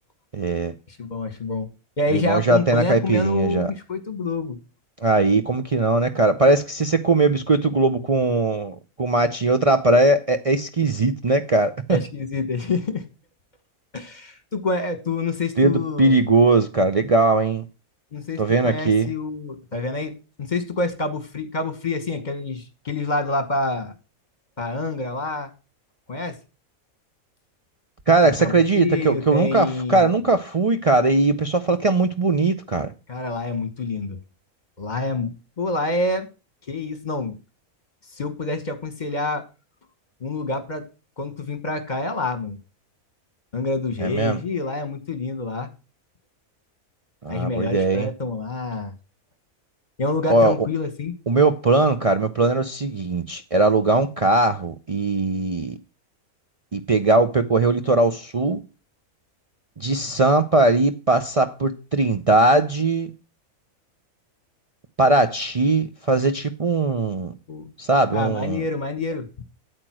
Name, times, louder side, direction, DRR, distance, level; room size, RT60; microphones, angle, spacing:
voice 1, 0.3-0.7 2.1-3.7 5.0-12.0 15.6-17.6 18.4-19.1 28.1-32.9 44.0-44.4 47.2-48.1 50.3-50.7 51.3-55.7 56.7-58.6 59.8-63.1 65.0-67.3 67.8-68.6, right 3 dB, 50° right, 0.4 m, -20 dB
voice 2, 0.9-1.7 2.0-4.6 11.9-13.0 13.9-16.2 18.1-20.1 20.4-23.9 24.6-25.5 26.1-26.4 28.2-30.1 33.1-34.2 34.8-36.3 36.7-37.4 38.1-39.4 40.2-40.8 41.2-42.6 43.5-45.7 47.3-48.9 50.0-51.1 67.5-67.7 68.1-69.4, left 3 dB, 30° left, 1.4 m, -27 dB
9.0 x 8.2 x 6.1 m
omnidirectional pair, 1.5 m